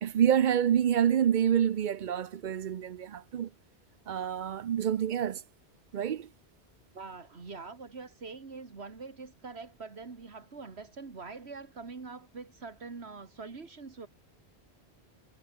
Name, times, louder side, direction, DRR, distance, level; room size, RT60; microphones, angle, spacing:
voice 1, 0.0-3.5 4.1-5.4 5.9-6.3, right 9 dB, 55° right, 0.6 m, -27 dB
voice 2, 6.9-14.1, right 4 dB, 85° right, 2.3 m, -44 dB
omnidirectional pair, 1.1 m